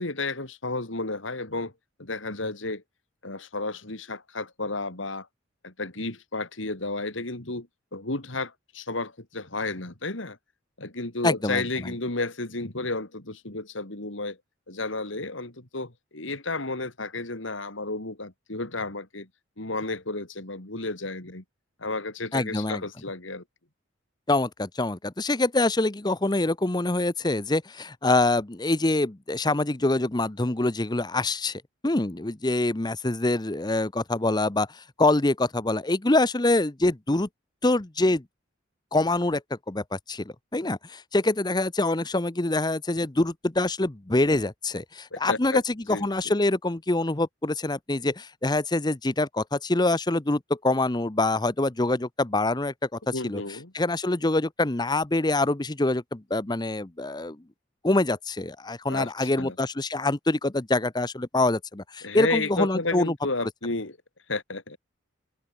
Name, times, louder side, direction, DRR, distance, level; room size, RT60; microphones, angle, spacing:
voice 1, 0.0-1.7 2.0-2.8 3.2-5.3 5.6-7.7 7.9-10.4 10.8-14.4 14.7-19.3 19.6-21.4 21.8-23.4 45.1-45.6 45.9-46.1 53.1-53.7 58.9-59.5 62.0-64.0 64.3-64.8, left 3 dB, 75° left, 3.1 m, -32 dB
voice 2, 11.2-11.9 22.3-22.8 24.3-37.3 37.6-38.2 38.9-39.4 39.7-53.4 53.7-57.4 57.8-63.1, left 2 dB, 20° left, 0.9 m, -25 dB
head